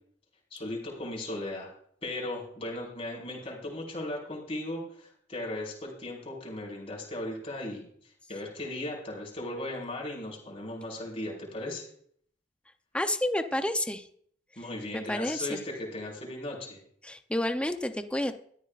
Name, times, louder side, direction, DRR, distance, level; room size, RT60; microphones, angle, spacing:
voice 1, 0.5-1.7 2.0-7.9 8.3-11.9 14.5-16.8, left 1 dB, 35° left, -2 dB, 5.0 m, -37 dB
voice 2, 12.9-14.1 14.9-15.6 17.0-18.3, left 1 dB, 5° left, 7 dB, 0.7 m, -30 dB
20.0 x 13.5 x 2.5 m, 0.64 s
head